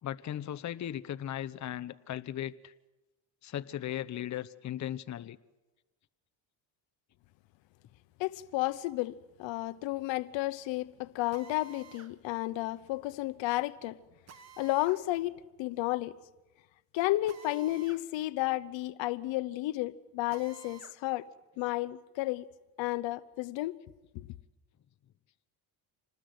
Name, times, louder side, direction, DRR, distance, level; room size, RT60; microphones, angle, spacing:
voice 1, 0.0-2.7 3.4-5.4, left 11 dB, 40° left, 0.9 m, -37 dB
voice 2, 8.2-14.0 14.6-16.1 16.9-21.3 21.6-22.5 22.8-23.8 24.1-24.3, left 17 dB, 80° left, 1.0 m, -32 dB
Drill, 11.3-12.1 14.3-15.0 17.3-18.0 18.4-18.5 20.3-21.0, right 8 dB, 35° right, 1.5 m, -53 dB
26.5 x 20.0 x 7.9 m
cardioid pair, 120°, 44 cm